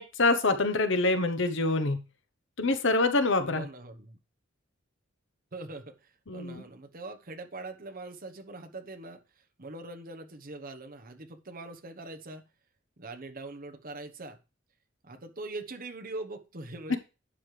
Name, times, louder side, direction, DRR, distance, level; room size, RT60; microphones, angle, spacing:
voice 1, 0.0-2.0 2.6-3.6 6.3-6.6 16.9-17.0, left 2 dB, 65° left, 9 dB, 1.0 m, -25 dB
voice 2, 3.5-4.2 5.5-9.2 9.6-12.4 13.0-14.4 15.0-17.0, right 2 dB, 45° right, 6 dB, 1.1 m, -42 dB
11.5 x 7.8 x 3.3 m, 0.32 s
head